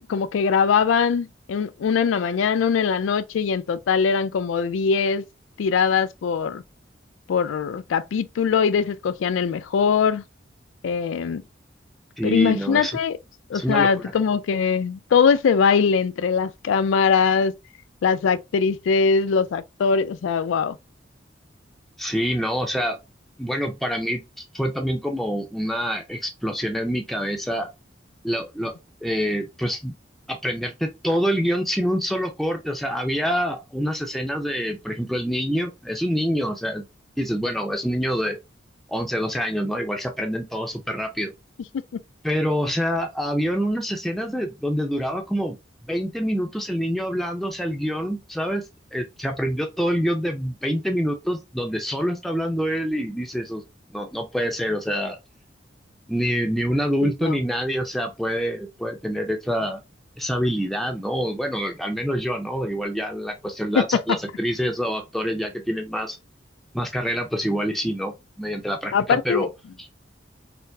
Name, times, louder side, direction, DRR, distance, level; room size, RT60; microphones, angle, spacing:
voice 1, 0.1-5.3 5.6-6.6 7.3-10.2 10.8-11.4 12.2-13.2 13.5-17.6 18.0-20.8 57.0-57.4 63.8-63.9 68.9-69.5, left 6 dB, 90° left, 0.3 m, -21 dB
voice 2, 12.2-13.0 13.5-14.1 22.0-23.0 23.4-27.7 28.2-28.7 29.0-29.9 30.3-36.9 37.2-38.4 38.9-41.3 42.2-45.6 45.9-48.6 48.9-53.6 53.9-55.2 56.1-59.8 60.2-66.2 66.7-69.5, equal, ahead, 0.4 m, -26 dB
4.3 x 2.0 x 2.6 m
head